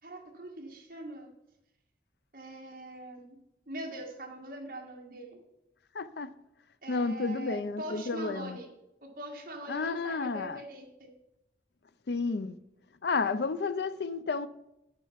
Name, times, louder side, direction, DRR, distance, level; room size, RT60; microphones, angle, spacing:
voice 1, 0.0-1.3 2.3-3.4 3.7-5.4 6.8-8.7 9.0-11.1, right 1 dB, 50° right, 1.9 m, -42 dB
voice 2, 5.9-6.3 6.9-8.6 9.7-10.6 12.1-12.6 13.0-14.5, left 4 dB, 70° left, 0.5 m, -31 dB
10.5 x 6.2 x 5.7 m
head